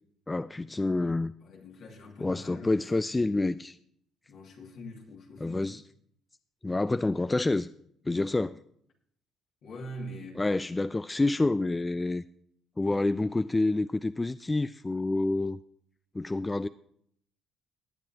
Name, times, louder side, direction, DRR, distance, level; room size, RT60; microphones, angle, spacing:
voice 1, 0.3-1.3 2.2-3.8 5.4-5.8 6.6-7.7 8.1-8.6 10.4-12.2 12.8-15.6 16.1-16.7, left 2 dB, 20° left, 0.3 m, -28 dB
voice 2, 1.4-3.2 4.3-5.8 9.6-10.5, equal, 65° left, 2.4 m, -44 dB
18.0 x 9.0 x 2.9 m
supercardioid pair, 65°, 0 cm